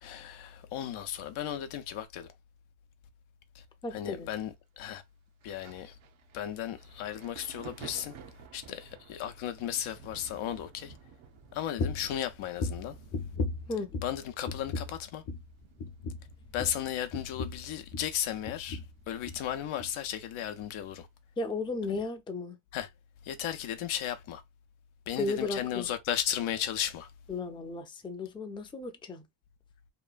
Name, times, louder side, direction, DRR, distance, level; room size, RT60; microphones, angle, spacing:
voice 1, 0.0-2.3 3.5-3.6 3.9-5.0 5.4-5.9 6.3-8.1 8.5-10.9 11.5-12.9 14.0-15.2 16.5-18.8 19.1-21.1 21.9-22.0 22.7-22.9 23.2-24.4 25.1-27.1, left 10 dB, 80° left, 0.6 m, -35 dB
voice 2, 3.8-4.3 13.7-13.9 21.4-22.6 25.2-25.9 27.3-29.3, left 3 dB, 10° left, 0.4 m, -34 dB
Thunder, 5.4-18.8 19.0-20.4 21.2-21.4, right 7 dB, 75° right, 0.7 m, -54 dB
sound 1, 11.8-12.1 12.6-14.2 14.4-15.0 15.2-15.5 15.8-18.2 18.4-18.9 19.2-19.4 19.8-19.9, left 3 dB, 50° left, 0.8 m, -36 dB
2.9 x 2.2 x 2.4 m
cardioid pair, 90°, 48 cm